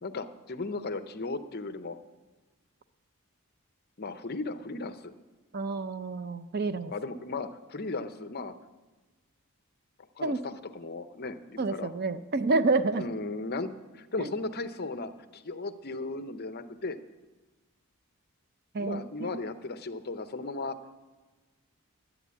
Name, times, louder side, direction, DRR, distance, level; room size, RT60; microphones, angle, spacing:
voice 1, 0.0-2.0 4.0-5.1 6.9-8.5 10.2-11.9 13.0-17.0 18.8-20.8, left 3 dB, 45° left, 10 dB, 0.7 m, -36 dB
voice 2, 5.5-6.9 10.2-10.4 11.6-13.0 14.2-14.3 18.7-19.3, right 3 dB, 45° right, 12 dB, 0.6 m, -29 dB
11.0 x 10.5 x 8.3 m, 1.2 s
head